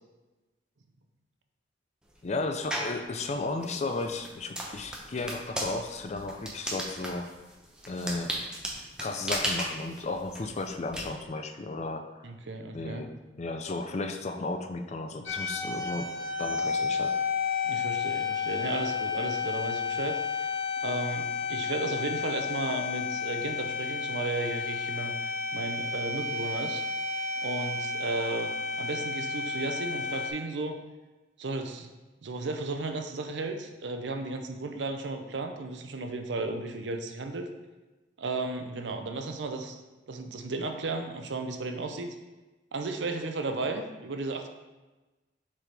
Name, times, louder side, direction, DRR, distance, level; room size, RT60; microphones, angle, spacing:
voice 1, 2.2-7.3 7.9-8.4 9.0-12.1 12.7-13.1 13.4-16.1 16.4-17.2, left 3 dB, 35° left, 6 dB, 0.5 m, -34 dB
sound 1, 2.7-3.0 3.6-11.0, right 1 dB, 5° right, 0.8 m, -35 dB
voice 2, 12.2-13.0 17.6-20.5 20.8-26.8 27.4-28.5 28.8-30.8 31.4-31.9 32.2-37.5 38.2-39.8 40.1-42.1 42.7-44.5, right 3 dB, 70° right, 6 dB, 0.6 m, -34 dB
sound 2, 15.3-30.3, left 5 dB, 85° left, 1.0 m, -32 dB
7.2 x 4.1 x 3.4 m, 1.2 s
head